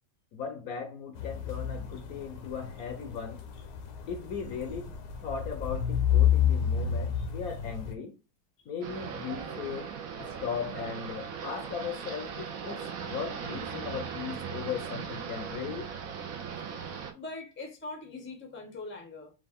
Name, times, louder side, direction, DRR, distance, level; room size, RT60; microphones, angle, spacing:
voice 1, 0.3-3.4 4.1-4.9 5.2-8.1 8.7-9.9 10.2-15.9, left 7 dB, 65° left, 1.1 m, -38 dB
sound 1, 1.2-7.9, left 9 dB, 85° left, 1.5 m, -30 dB
sound 2, 8.8-17.1, right 7 dB, 60° right, 1.0 m, -38 dB
voice 2, 17.1-19.3, left 3 dB, 10° left, 0.5 m, -42 dB
5.1 x 2.5 x 3.6 m
omnidirectional pair, 1.9 m